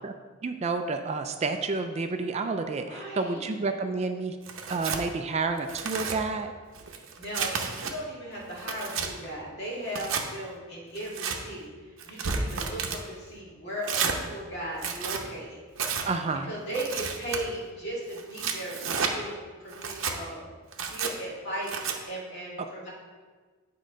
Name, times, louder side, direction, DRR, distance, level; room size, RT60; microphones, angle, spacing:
voice 1, 0.4-4.4 4.7-6.5 16.0-16.5, right 3 dB, 30° right, 7 dB, 0.3 m, -30 dB
voice 2, 2.6-3.6 6.9-15.6 16.5-20.6 20.9-22.9, right 1 dB, 50° left, -5 dB, 2.2 m, -37 dB
Tearing, 4.4-5.0 5.6-6.2 6.7-7.9 8.4-9.1 9.9-10.2 10.9-11.4 12.0-13.0 13.8-14.2 14.7-15.2 15.8-16.1 16.7-17.4 18.1-19.1 19.7-20.2 20.7-21.1 21.7-22.0, right 5 dB, 65° right, 0.7 m, -31 dB
8.5 x 3.8 x 5.1 m, 1.5 s
head